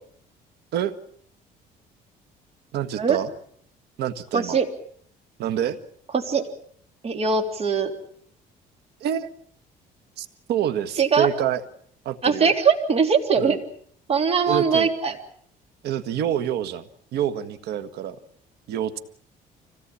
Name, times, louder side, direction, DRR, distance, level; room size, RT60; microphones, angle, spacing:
voice 1, 2.7-3.3 4.0-4.6 5.4-5.8 9.0-9.3 10.2-11.6 12.1-12.5 13.4-13.5 14.5-14.9 15.8-18.2 18.7-19.0, right 10 dB, 75° right, 11 dB, 1.7 m, -27 dB
voice 2, 4.3-4.7 6.1-6.5 7.0-7.9 11.0-11.3 12.2-13.6 14.1-15.2, right 5 dB, 35° right, 6 dB, 3.2 m, -21 dB
25.0 x 17.5 x 8.7 m, 0.64 s
cardioid pair, 110°, 17 cm